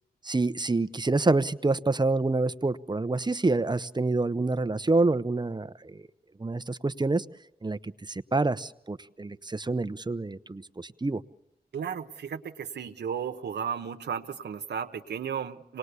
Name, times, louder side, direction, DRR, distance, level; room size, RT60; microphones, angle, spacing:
voice 1, 0.2-6.0 6.4-7.2 7.6-11.2, right 3 dB, 25° right, 13 dB, 0.8 m, -27 dB
voice 2, 11.7-15.8, right 7 dB, 90° right, 6 dB, 1.0 m, -34 dB
26.0 x 19.5 x 8.2 m, 0.86 s
cardioid pair, 40°, 17 cm